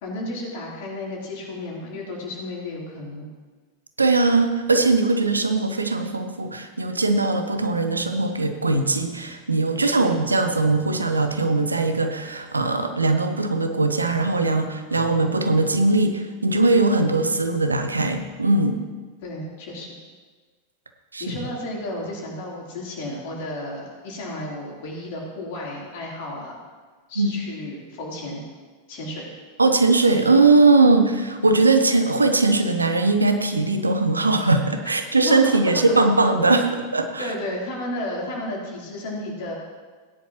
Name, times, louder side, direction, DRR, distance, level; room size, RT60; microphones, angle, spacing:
voice 1, 0.0-3.3 10.0-10.2 19.2-20.0 21.2-26.6 27.1-28.4 28.9-29.3 35.2-35.6 37.2-39.5, left 1 dB, 50° left, -3 dB, 3.6 m, -33 dB
voice 2, 4.0-18.8 21.1-21.3 27.2-27.3 29.6-37.3, right 3 dB, 80° right, 7 dB, 0.9 m, -20 dB
17.0 x 10.0 x 3.1 m, 1.4 s
figure-of-eight pair, 90°, 0 cm